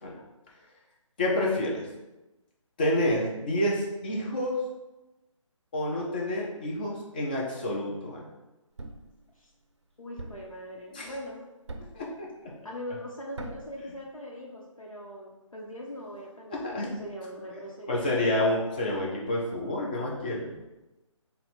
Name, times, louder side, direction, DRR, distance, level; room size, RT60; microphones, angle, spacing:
voice 1, 1.2-1.9 2.8-4.6 5.7-8.2 10.9-11.1 11.9-12.5 16.5-17.0 17.9-20.5, left 1 dB, 15° left, -2 dB, 0.5 m, -29 dB
Thump thud, 8.8-9.2 10.2-10.6 11.7-12.1 13.4-13.8, right 2 dB, 55° right, 0.5 m, -40 dB
voice 2, 10.0-11.4 12.6-18.5, equal, 90° left, -3 dB, 0.9 m, -40 dB
4.1 x 2.2 x 4.0 m, 1.0 s
figure-of-eight pair, 145°, 17 cm